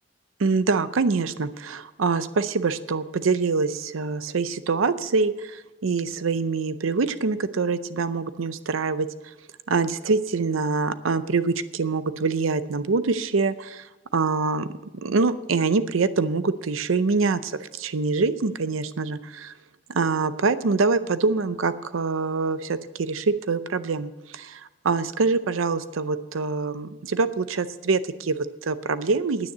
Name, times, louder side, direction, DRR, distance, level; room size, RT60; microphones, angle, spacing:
voice 1, 0.4-9.3 9.7-14.7 15.0-19.5 19.9-29.5, right 4 dB, 90° right, 13 dB, 0.6 m, -25 dB
9.9 x 9.5 x 7.8 m, 1.1 s
head